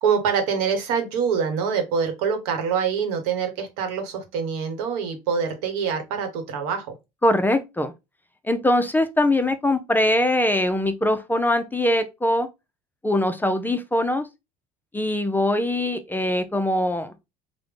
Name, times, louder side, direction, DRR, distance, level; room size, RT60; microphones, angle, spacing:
voice 1, 0.0-6.9, right 6 dB, 85° right, 1.0 m, -25 dB
voice 2, 7.2-7.9 8.4-12.5 13.0-14.3 14.9-17.1, left 1 dB, 10° left, 0.4 m, -22 dB
3.5 x 2.1 x 3.2 m
supercardioid pair, 95°, 19 cm